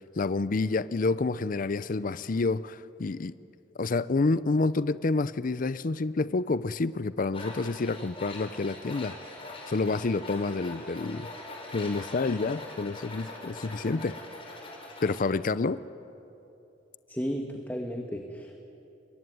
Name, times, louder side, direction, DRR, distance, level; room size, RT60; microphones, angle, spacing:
voice 1, 0.2-3.3 3.8-9.2 9.7-11.3 11.7-14.1 15.0-15.8, left 3 dB, 50° left, 15 dB, 0.5 m, -28 dB
Tools, 7.3-15.3, left 2 dB, 30° left, 5.2 m, -42 dB
voice 2, 17.1-18.6, equal, 10° left, 3 dB, 1.4 m, -34 dB
26.5 x 22.0 x 9.4 m, 2.9 s
head